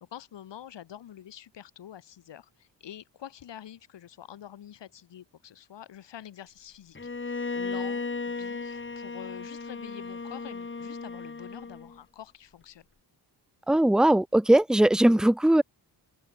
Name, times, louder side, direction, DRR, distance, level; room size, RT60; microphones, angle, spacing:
voice 1, 0.0-12.9, left 10 dB, 80° left, 7.5 m, -46 dB
Bowed string instrument, 7.0-12.0, left 4 dB, 25° left, 4.9 m, -35 dB
voice 2, 13.7-15.6, right 1 dB, ahead, 1.0 m, -20 dB
open air
cardioid pair, 100°, 42 cm